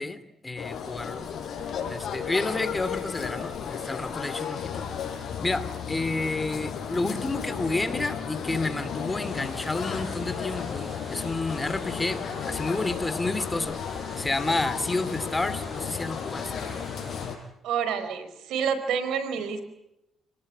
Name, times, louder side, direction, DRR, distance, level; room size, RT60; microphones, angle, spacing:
voice 1, 0.0-1.3 1.9-4.9 5.4-13.8 14.2-16.6, left 2 dB, 20° left, 13 dB, 2.6 m, -30 dB
sound 1, 0.6-17.3, left 7 dB, 60° left, 5.4 m, -34 dB
sound 2, 9.2-17.3, right 2 dB, 25° right, 7.3 m, -46 dB
voice 2, 17.6-19.6, right 7 dB, 85° right, 10 dB, 4.7 m, -28 dB
29.5 x 19.0 x 10.0 m, 0.87 s
cardioid pair, 90°, 0 cm